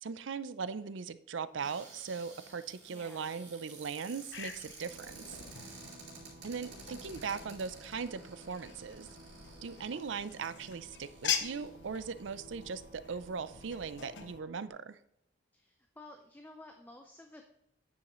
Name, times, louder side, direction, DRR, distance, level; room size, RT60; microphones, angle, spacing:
voice 1, 0.0-5.4 5.6-5.7 6.4-9.1 9.6-15.0, right 5 dB, 80° right, 14 dB, 0.5 m, -39 dB
Cupboard open or close, 1.5-11.9 12.6-12.7 12.9-13.3, right 3 dB, 65° right, 3.5 m, -53 dB
voice 2, 2.9-3.3 15.5-17.4, left 2 dB, 10° left, 4 dB, 0.5 m, -53 dB
sound 1, 4.3-14.4, left 8 dB, 70° left, 0.8 m, -43 dB
sound 2, 4.8-14.7, right 2 dB, 45° right, 1.2 m, -57 dB
9.4 x 7.3 x 3.1 m, 0.82 s
head